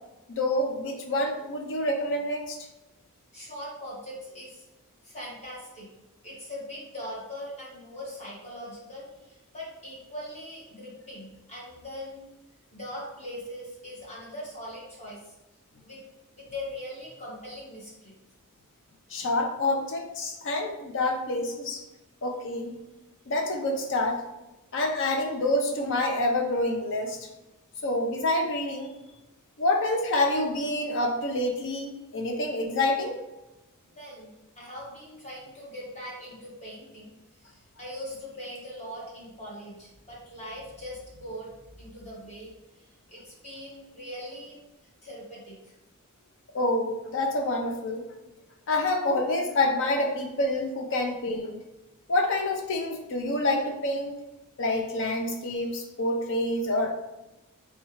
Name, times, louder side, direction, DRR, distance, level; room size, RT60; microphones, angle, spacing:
voice 1, 0.3-2.6 19.1-21.8 22.2-22.8 23.3-24.2 24.7-27.3 27.8-28.9 29.6-33.2 46.5-48.0 48.7-51.6 52.1-54.2 54.6-56.9, left 1 dB, 60° left, 3 dB, 0.6 m, -27 dB
voice 2, 3.3-4.6 5.0-5.9 6.2-12.3 12.7-15.3 15.8-16.0 16.4-18.1 34.0-37.1 37.4-44.6 45.0-45.7, left 1 dB, 30° left, -5 dB, 1.3 m, -41 dB
4.4 x 2.4 x 3.0 m, 0.99 s
head